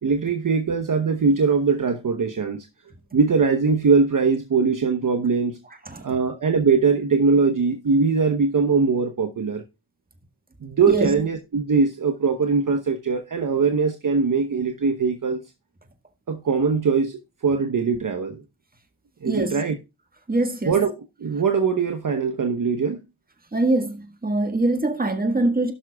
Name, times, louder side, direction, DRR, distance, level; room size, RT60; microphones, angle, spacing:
voice 1, 0.0-2.7 3.1-5.6 6.0-9.6 10.6-15.4 16.3-18.4 19.2-19.8 20.7-23.0, right 5 dB, 45° right, 1.0 m, -21 dB
voice 2, 19.2-19.6 20.3-20.8 23.5-25.7, right 2 dB, 20° right, 1.7 m, -23 dB
17.0 x 6.1 x 2.3 m
cardioid pair, 55°, 44 cm